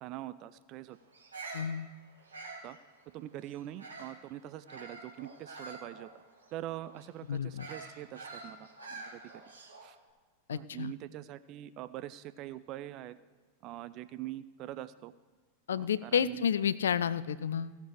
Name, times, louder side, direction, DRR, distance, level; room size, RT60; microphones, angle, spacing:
voice 1, 0.0-1.0 2.6-2.8 3.1-6.2 6.5-9.2 9.8-10.0 10.5-13.1 13.6-15.1 15.8-16.4, right 14 dB, 40° right, 14 dB, 0.5 m, -43 dB
Bird vocalization bird call bird song, 1.1-4.2 4.7-10.0, right 3 dB, 75° right, 2.5 m, -47 dB
voice 2, 1.5-1.9 7.3-7.7 10.5-10.9 15.7-17.7, left 8 dB, 65° left, 17 dB, 0.4 m, -31 dB
17.5 x 6.8 x 4.8 m, 1.4 s
figure-of-eight pair, 90°, 0 cm